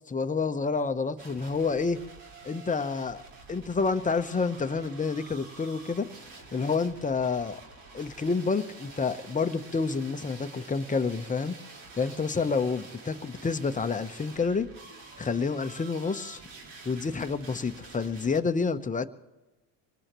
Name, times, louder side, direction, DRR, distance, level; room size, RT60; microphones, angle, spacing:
voice 1, 0.1-2.0 2.4-3.2 3.5-6.1 6.5-7.6 7.9-11.6 12.0-14.7 15.2-16.4 16.8-19.0, left 4 dB, 15° left, 9 dB, 0.9 m, -29 dB
sound 1, 1.2-18.4, right 3 dB, 65° right, 4.7 m, -48 dB
24.5 x 19.0 x 3.1 m, 1.1 s
supercardioid pair, 95°, 46 cm